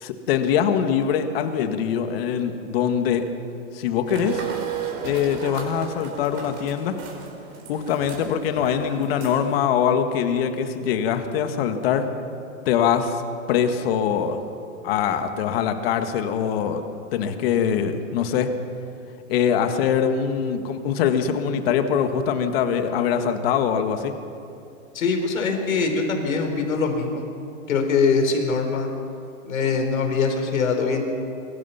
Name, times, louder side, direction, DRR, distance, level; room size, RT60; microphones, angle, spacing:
voice 1, 0.0-3.2 3.7-4.4 5.0-7.0 7.7-12.1 12.7-13.2 13.5-14.4 14.8-16.8 17.1-18.5 19.3-24.1, left 8 dB, 45° left, 7 dB, 1.9 m, -23 dB
sound 1, 4.1-9.6, right 6 dB, 40° right, 5.5 m, -34 dB
voice 2, 24.9-27.3 27.7-28.9 29.4-31.0, left 4 dB, 80° left, 4 dB, 4.6 m, -23 dB
23.5 x 23.5 x 5.9 m, 2.6 s
hypercardioid pair, 150°, 40 cm